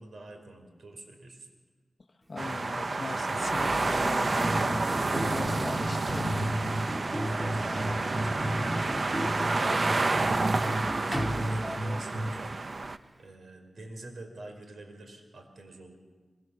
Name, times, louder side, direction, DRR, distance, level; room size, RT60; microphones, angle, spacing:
voice 1, 0.0-1.5 7.2-8.5 9.1-12.6 13.2-16.0, right 2 dB, 70° right, 4 dB, 5.1 m, -46 dB
voice 2, 2.3-6.7, left 3 dB, 40° left, 6 dB, 1.1 m, -39 dB
Sliding door, 2.3-2.4 3.0-12.2 12.5-13.3, equal, 25° right, 2.4 m, -41 dB
sound 1, 2.4-13.0, right 3 dB, 45° right, 0.9 m, -29 dB
sound 2, 4.4-12.4, equal, 5° right, 2.1 m, -34 dB
25.5 x 24.0 x 7.2 m, 1.4 s
wide cardioid pair, 80°, 0 cm